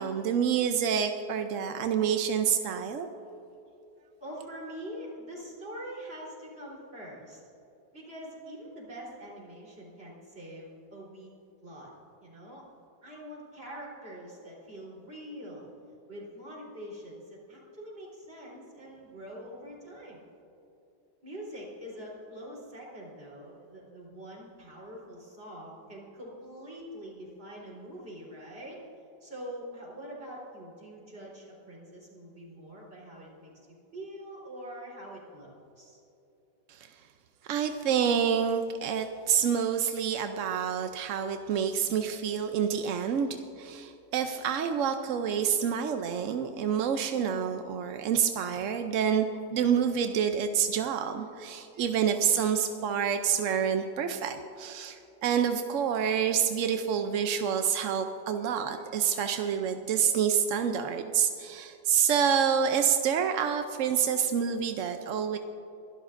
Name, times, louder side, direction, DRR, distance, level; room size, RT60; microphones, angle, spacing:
voice 1, 0.0-3.1 36.7-36.9 37.5-49.3 49.5-65.4, right 8 dB, 65° right, 7 dB, 0.8 m, -28 dB
voice 2, 4.2-7.4 7.9-11.3 11.6-11.9 12.2-12.7 13.0-15.7 16.1-20.2 21.2-28.8 29.2-33.7 33.9-36.0, equal, 35° right, -5 dB, 4.0 m, -44 dB
23.5 x 12.0 x 2.6 m, 2.9 s
omnidirectional pair, 1.9 m